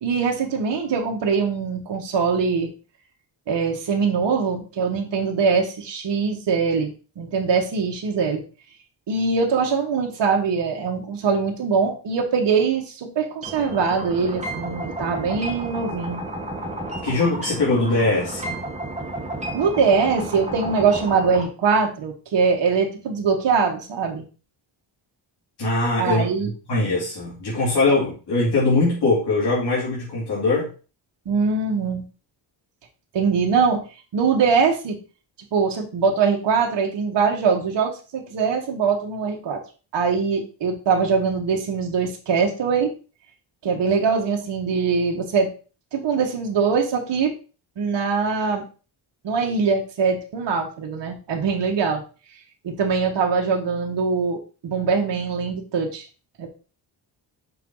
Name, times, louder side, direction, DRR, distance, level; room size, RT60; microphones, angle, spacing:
voice 1, 0.0-2.7 3.5-8.4 9.1-16.2 19.5-24.3 26.0-26.5 31.2-32.0 33.1-33.8 34.1-35.0 35.5-39.6 39.9-42.9 43.6-45.5 45.9-47.3 47.8-48.6 49.2-52.0 52.6-56.0 56.4-56.5, right 5 dB, 65° right, 1 dB, 1.5 m, -22 dB
sound 1, 13.4-21.4, right 1 dB, 15° right, 1.3 m, -32 dB
voice 2, 17.0-18.6 25.6-30.7, left 2 dB, 55° left, -7 dB, 2.8 m, -22 dB
6.1 x 4.7 x 3.8 m, 0.35 s
wide cardioid pair, 170°, 46 cm